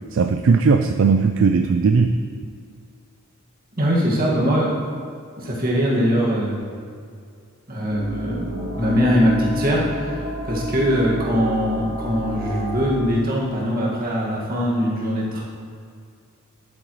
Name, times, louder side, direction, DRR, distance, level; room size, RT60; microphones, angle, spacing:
voice 1, 0.1-2.1, right 5 dB, 60° right, 7 dB, 0.4 m, -17 dB
voice 2, 3.8-4.8 5.4-6.6 7.7-15.4, equal, 40° right, -5 dB, 1.8 m, -22 dB
sound 1, 7.9-13.1, equal, 90° right, 2.2 m, -30 dB
10.5 x 8.7 x 3.1 m, 2.3 s
head